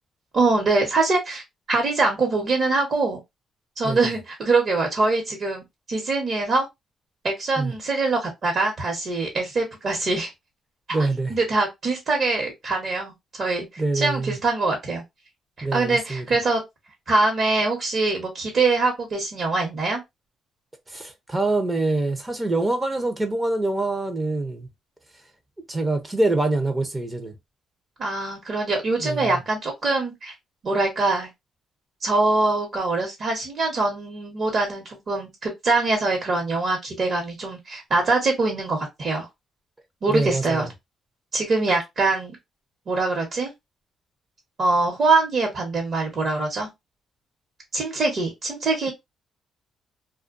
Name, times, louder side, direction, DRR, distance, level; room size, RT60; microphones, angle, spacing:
voice 1, 0.3-1.4 1.7-3.2 3.8-5.6 5.9-6.7 7.2-10.3 10.9-13.7 13.9-15.0 15.6-16.6 17.1-20.0 28.0-30.3 30.6-31.3 32.0-39.3 40.0-40.7 41.3-42.4 42.9-43.5 44.6-46.7 47.7-48.9, right 3 dB, 50° right, 1.1 m, -23 dB
voice 2, 10.9-11.4 13.8-14.4 15.6-16.2 20.9-24.7 25.7-27.3 29.0-29.4 40.1-40.7, right 2 dB, 20° right, 0.6 m, -25 dB
2.3 x 2.2 x 2.5 m
cardioid pair, 90°, 0 cm